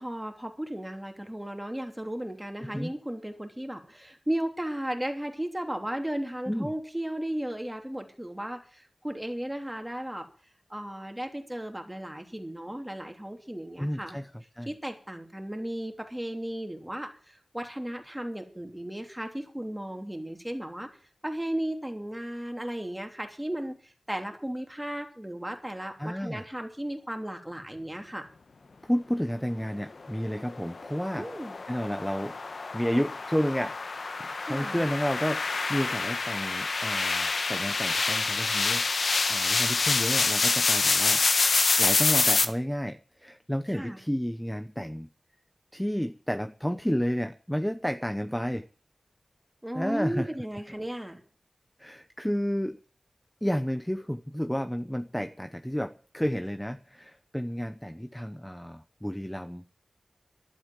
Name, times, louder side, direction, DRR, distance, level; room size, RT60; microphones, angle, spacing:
voice 1, 0.0-10.3 10.7-14.2 14.7-20.9 21.2-28.3 31.1-31.6 34.4-34.8 43.7-44.0 49.6-51.2, right 1 dB, 10° right, 3.0 m, -35 dB
voice 2, 2.6-2.9 6.5-6.7 13.8-14.3 14.6-14.7 26.0-26.4 28.8-31.2 31.7-32.4 32.7-33.8 34.2-41.2 41.8-45.1 45.7-48.7 49.7-50.3 51.8-52.8 53.4-59.6, equal, 5° left, 0.9 m, -31 dB
sound 1, 30.4-42.5, left 3 dB, 75° left, 1.3 m, -27 dB
11.5 x 8.3 x 9.3 m
cardioid pair, 50°, 0 cm